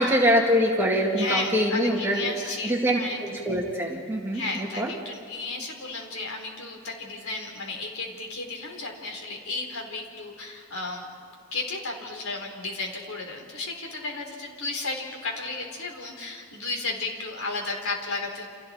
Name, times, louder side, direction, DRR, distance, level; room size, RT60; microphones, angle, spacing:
voice 1, 0.0-4.9, equal, 10° right, -1 dB, 2.0 m, -24 dB
voice 2, 1.2-3.2 4.3-11.1 11.5-18.5, left 3 dB, 85° left, 1 dB, 3.8 m, -33 dB
29.5 x 28.0 x 4.3 m, 2.4 s
head